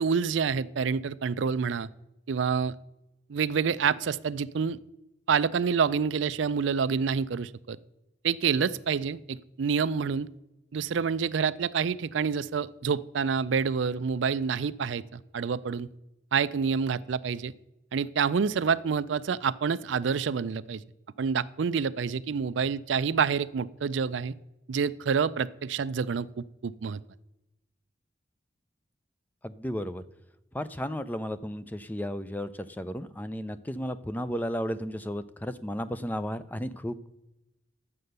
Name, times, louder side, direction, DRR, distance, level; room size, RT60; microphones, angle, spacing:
voice 1, 0.0-1.9 2.3-2.7 3.3-4.8 5.3-7.8 8.2-10.3 10.7-15.9 16.3-17.5 17.9-20.8 21.2-24.3 24.7-27.0, right 6 dB, 80° right, 15 dB, 0.4 m, -27 dB
voice 2, 29.4-30.0 30.5-37.1, equal, 10° left, 13 dB, 0.4 m, -34 dB
11.0 x 7.7 x 6.6 m, 0.95 s
head